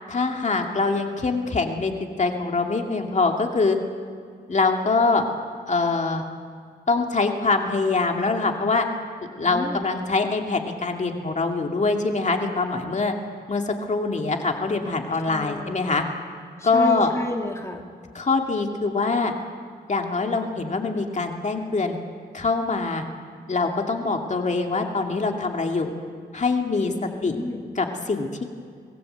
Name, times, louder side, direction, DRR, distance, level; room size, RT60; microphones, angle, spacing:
voice 1, 0.1-1.9 2.2-3.8 4.5-5.2 5.7-6.2 6.9-8.9 9.4-13.1 13.5-16.0 16.6-17.1 18.1-19.3 19.9-22.0 22.3-23.0 23.5-25.9 26.3-26.9 27.2-27.4 27.8-28.4, left 3 dB, 45° left, 3 dB, 2.4 m, -24 dB
voice 2, 9.4-9.8 15.2-16.0 16.6-17.8 26.8-27.8, left 2 dB, 15° left, 2 dB, 2.3 m, -31 dB
25.0 x 20.0 x 8.1 m, 2.1 s
wide cardioid pair, 100°, 18 cm